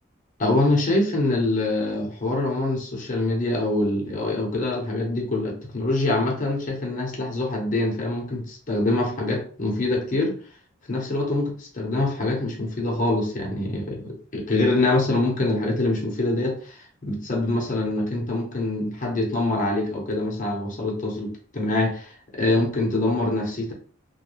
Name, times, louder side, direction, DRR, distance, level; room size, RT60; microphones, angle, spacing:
voice 1, 0.4-10.4 10.9-22.1 22.3-23.7, left 2 dB, 40° left, 0.8 m, -24 dB
2.3 x 2.1 x 3.0 m
head